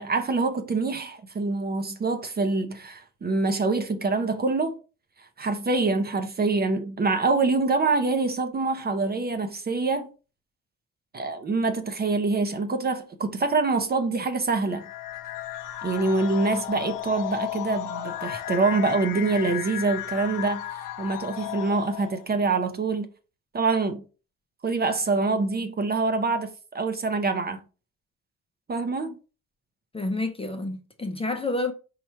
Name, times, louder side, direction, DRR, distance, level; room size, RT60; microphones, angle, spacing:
voice 1, 0.0-4.7 5.4-10.1 11.1-14.8 15.8-23.1 23.5-24.0 24.6-27.6 28.7-29.1, right 3 dB, 30° right, 0.6 m, -25 dB
sound 1, 14.7-22.3, left 13 dB, 70° left, 0.6 m, -34 dB
voice 2, 29.9-31.7, left 2 dB, 15° left, 0.5 m, -29 dB
4.2 x 2.4 x 4.3 m
cardioid pair, 90°, 34 cm